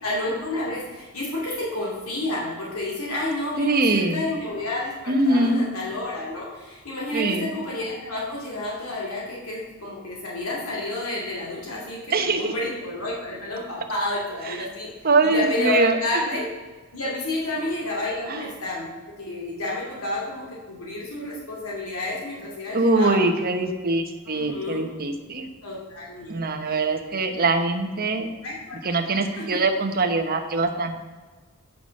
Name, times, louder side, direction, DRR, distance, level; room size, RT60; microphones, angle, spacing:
voice 1, 0.0-16.5 16.9-18.9 19.2-23.2 24.3-24.9 25.6-26.4 26.7-26.9 28.4-28.8 29.4-29.5, left 2 dB, 75° left, -4 dB, 2.5 m, -30 dB
voice 2, 3.6-4.3 5.1-5.6 7.1-7.5 12.1-12.5 15.0-16.0 22.7-25.5 26.3-28.3 28.8-30.9, right 3 dB, 45° right, 5 dB, 1.0 m, -22 dB
8.6 x 5.8 x 6.4 m, 1.3 s
head